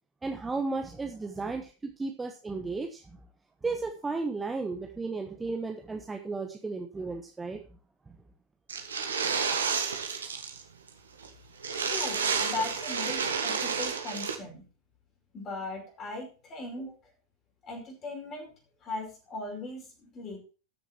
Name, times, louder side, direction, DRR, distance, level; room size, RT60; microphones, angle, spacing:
voice 1, 0.2-3.0 3.6-7.6, right 3 dB, 10° right, 3 dB, 1.2 m, -34 dB
sound 1, 8.7-10.6 10.9-11.0 11.2-11.3 11.6-14.3, right 6 dB, 70° right, 1.8 m, -30 dB
voice 2, 11.9-14.6 15.3-16.9 17.6-18.5 18.8-20.4, left 3 dB, 30° left, 2 dB, 5.0 m, -38 dB
14.0 x 6.9 x 4.5 m, 0.35 s
figure-of-eight pair, 90°, 0 cm